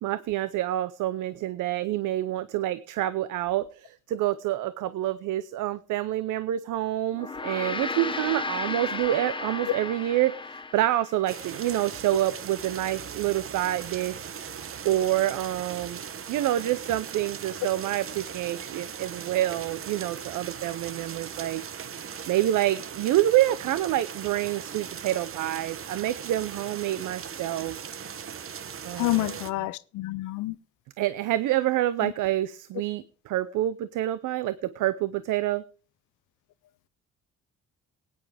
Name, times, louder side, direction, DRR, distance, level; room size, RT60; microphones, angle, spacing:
voice 1, 0.0-14.3 14.8-16.0 16.3-21.6 22.3-27.8 28.8-29.4 31.0-35.6, right 14 dB, 85° right, 0.7 m, -27 dB
Gong, 7.1-11.7, left 3 dB, 15° left, 1.0 m, -34 dB
sound 1, 11.3-29.5, right 7 dB, 45° right, 1.0 m, -39 dB
voice 2, 29.0-30.6 32.0-32.1, left 18 dB, 85° left, 0.6 m, -28 dB
19.0 x 9.5 x 3.4 m
cardioid pair, 90°, 30 cm